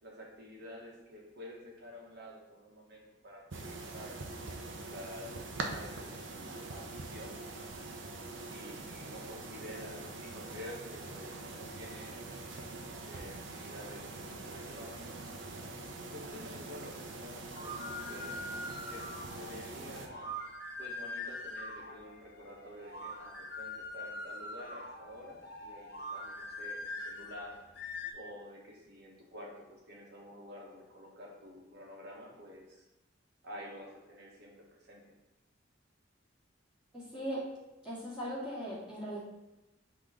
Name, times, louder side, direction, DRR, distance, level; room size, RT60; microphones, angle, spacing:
voice 1, 0.0-4.2 4.8-7.4 8.4-12.2 13.1-15.2 16.1-18.5 18.8-20.4 20.8-32.8 33.4-35.0, equal, 60° right, -2 dB, 1.5 m, -50 dB
sound 1, 3.5-20.1, right 2 dB, 75° right, 0.7 m, -44 dB
sound 2, 17.5-28.1, left 1 dB, 60° left, 0.7 m, -43 dB
voice 2, 36.9-37.4 37.8-39.2, equal, 5° right, -11 dB, 1.9 m, -38 dB
6.0 x 3.1 x 5.0 m, 0.99 s
head